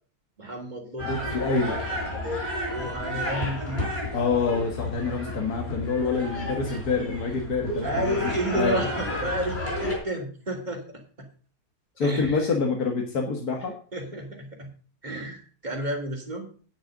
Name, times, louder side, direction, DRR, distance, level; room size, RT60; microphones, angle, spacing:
voice 1, 0.4-3.8 7.8-11.3 12.0-12.5 13.9-14.7 15.0-16.5, right 1 dB, 30° right, 0 dB, 2.8 m, -32 dB
sound 1, 1.0-10.0, left 1 dB, 40° left, 4.5 m, -32 dB
voice 2, 1.1-1.8 4.1-8.2 8.5-8.8 12.0-13.7, left 4 dB, 75° left, 2 dB, 2.1 m, -26 dB
10.0 x 6.3 x 6.4 m, 0.41 s
omnidirectional pair, 1.6 m